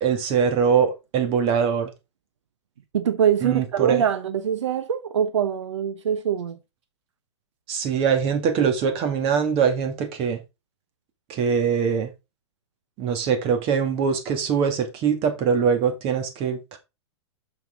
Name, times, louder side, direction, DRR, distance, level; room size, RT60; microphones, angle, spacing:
voice 1, 0.0-1.9 3.4-4.0 7.7-10.4 11.3-12.1 13.0-16.8, right 6 dB, 40° right, 2.4 m, -22 dB
voice 2, 2.9-6.6, right 8 dB, 85° right, 0.9 m, -23 dB
6.8 x 5.9 x 3.9 m
hypercardioid pair, 120°, 15 cm